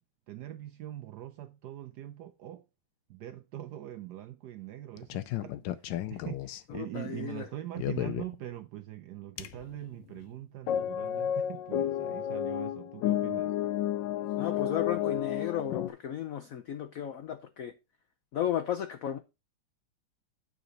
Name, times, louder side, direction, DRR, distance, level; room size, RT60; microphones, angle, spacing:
voice 1, 0.3-2.6 3.1-13.6, right 13 dB, 80° right, 0.9 m, -42 dB
sound 1, 5.0-6.8 7.8-8.4 9.4-9.8 10.1-10.2 10.7-15.9, left 11 dB, 70° left, 1.2 m, -32 dB
voice 2, 6.7-7.5 14.4-17.7 18.3-19.2, left 10 dB, 90° left, 0.7 m, -34 dB
9.2 x 4.1 x 5.3 m
omnidirectional pair, 2.3 m